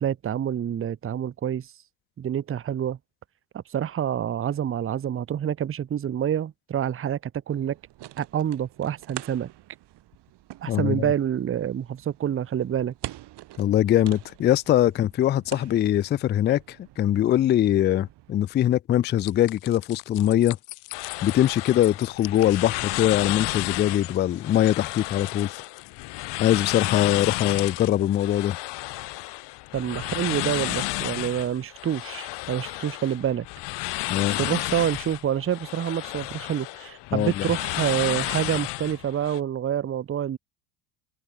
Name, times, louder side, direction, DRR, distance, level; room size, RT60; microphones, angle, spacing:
voice 1, 0.0-1.7 2.2-3.0 3.5-7.8 8.2-9.5 10.6-12.9 29.7-33.5 34.3-40.4, right 9 dB, 25° right, 0.9 m, -27 dB
sound 1, 7.5-18.4, right 15 dB, 55° right, 3.9 m, -45 dB
voice 2, 10.7-11.1 13.6-20.6 21.2-25.6 26.4-28.6 34.1-34.4 37.1-37.4, left 12 dB, 25° left, 0.4 m, -22 dB
sound 2, 19.2-28.5, left 39 dB, 75° left, 3.0 m, -45 dB
sound 3, 20.9-39.4, left 21 dB, 55° left, 1.1 m, -32 dB
open air
hypercardioid pair, 75°, 48 cm